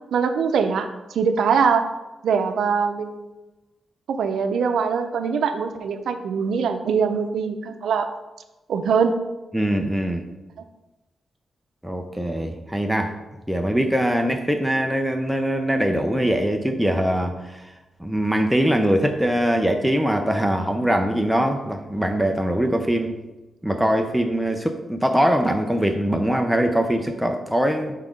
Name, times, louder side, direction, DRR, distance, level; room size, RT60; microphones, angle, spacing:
voice 1, 0.1-1.9 2.2-3.2 4.1-8.1 8.7-9.1, right 6 dB, 85° right, 8 dB, 0.5 m, -22 dB
voice 2, 9.5-10.2 11.8-13.1 13.5-17.6 18.0-23.1 23.6-27.9, equal, ahead, 3 dB, 0.5 m, -22 dB
5.7 x 3.6 x 5.1 m, 1.1 s
wide cardioid pair, 145°, 0 cm